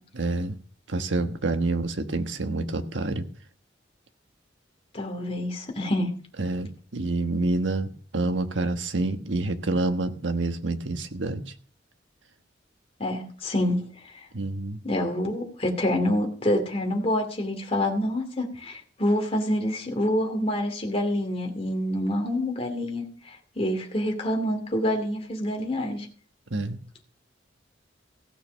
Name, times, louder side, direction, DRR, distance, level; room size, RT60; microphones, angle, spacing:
voice 1, 0.1-0.6 0.9-3.3 6.4-11.4 14.3-14.8 26.5-26.8, right 2 dB, 85° right, 8 dB, 1.3 m, -27 dB
voice 2, 4.9-6.1 13.0-13.8 14.1-14.3 14.8-26.1, left 1 dB, 30° left, 3 dB, 2.5 m, -27 dB
16.0 x 6.6 x 6.3 m, 0.43 s
head